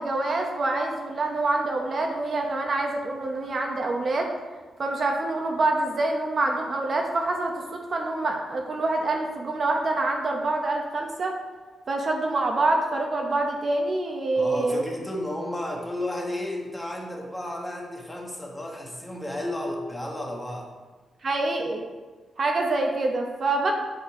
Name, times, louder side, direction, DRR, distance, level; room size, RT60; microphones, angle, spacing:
voice 1, 0.0-4.3 4.8-11.3 11.9-14.8 21.2-21.8 22.4-23.7, right 2 dB, 45° right, 2 dB, 0.9 m, -26 dB
voice 2, 14.3-20.7, left 1 dB, 5° left, -1 dB, 1.5 m, -32 dB
9.6 x 4.2 x 4.8 m, 1.4 s
wide cardioid pair, 120°, 0 cm